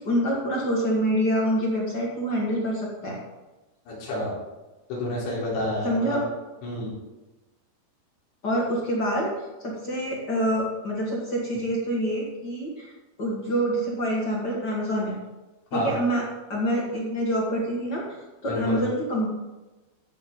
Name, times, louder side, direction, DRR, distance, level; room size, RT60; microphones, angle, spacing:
voice 1, 0.0-3.2 5.8-6.2 8.4-9.3 9.6-12.9 13.2-15.2 15.7-16.2 16.5-19.3, equal, 55° left, -3 dB, 1.1 m, -26 dB
voice 2, 3.9-4.3 4.9-6.2 6.6-6.9 15.7-15.9 18.5-18.8, left 1 dB, 85° left, -6 dB, 6.0 m, -29 dB
15.0 x 6.9 x 3.8 m, 1.1 s
omnidirectional pair, 5.0 m